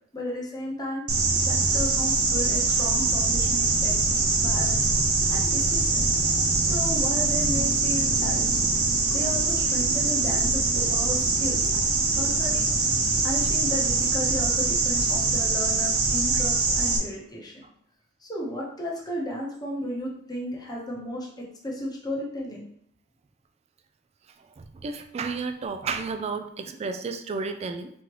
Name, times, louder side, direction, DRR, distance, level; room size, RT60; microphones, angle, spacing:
voice 1, 0.1-1.0 1.4-4.9 5.3-6.0 6.6-8.7 9.1-11.6 12.1-12.7 13.2-17.5 18.2-22.7, left 1 dB, 20° left, -3 dB, 0.9 m, -34 dB
sound 1, 1.1-17.0, right 3 dB, 85° right, 0.8 m, -23 dB
voice 2, 24.6-27.9, right 4 dB, 30° right, 8 dB, 0.3 m, -32 dB
3.8 x 3.1 x 3.0 m, 0.68 s
head